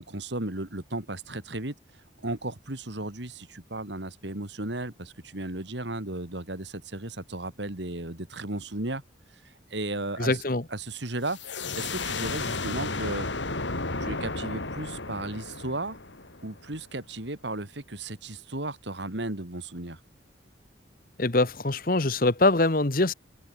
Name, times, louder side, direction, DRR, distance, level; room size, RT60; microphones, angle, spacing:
voice 1, 0.0-1.7 2.2-9.0 9.7-10.4 10.7-13.3 14.0-16.0 16.4-20.0, right 2 dB, 75° right, 2.8 m, -35 dB
voice 2, 10.2-10.6 21.2-23.1, left 2 dB, 50° left, 1.3 m, -23 dB
sound 1, 11.3-16.8, left 3 dB, 80° left, 3.4 m, -33 dB
head